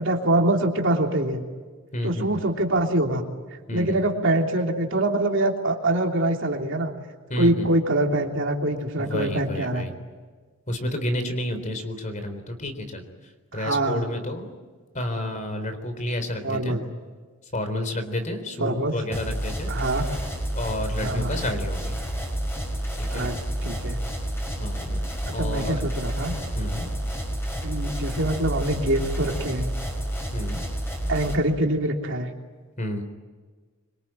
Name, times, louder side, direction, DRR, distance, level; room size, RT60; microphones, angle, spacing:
voice 1, 0.0-1.4 2.0-3.2 3.7-6.9 7.4-9.9 13.5-14.1 16.4-16.8 18.6-18.9 19.7-20.1 21.0-21.4 23.1-24.0 25.3-26.3 27.6-29.7 31.1-32.3, right 1 dB, 60° right, 2 dB, 3.2 m, -24 dB
voice 2, 1.9-2.5 3.7-4.0 7.3-7.7 9.0-9.9 10.7-13.0 13.5-14.5 14.9-16.8 17.5-19.7 20.5-22.0 23.1-23.3 24.6-25.0 25.3-25.8 26.6-26.9 30.3-30.6 32.8-33.0, left 1 dB, 35° left, 8 dB, 3.8 m, -30 dB
sound 1, 19.1-31.4, equal, 10° left, 5.4 m, -30 dB
26.0 x 24.5 x 9.0 m, 1.4 s
head